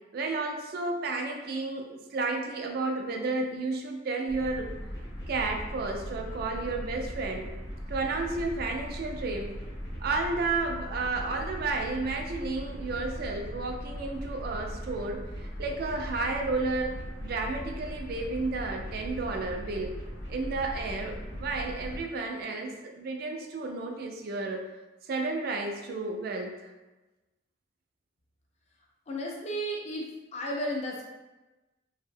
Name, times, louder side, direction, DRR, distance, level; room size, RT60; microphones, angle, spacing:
voice 1, 0.1-4.8 5.3-7.5 7.9-9.5 10.0-19.9 20.3-24.7 25.0-26.7, right 3 dB, 50° right, 2 dB, 0.3 m, -32 dB
sound 1, 4.3-22.0, equal, 55° left, 0.8 m, -39 dB
voice 2, 29.1-30.1 30.3-31.0, equal, 35° left, -1 dB, 0.4 m, -33 dB
2.7 x 2.0 x 2.6 m, 1.1 s
head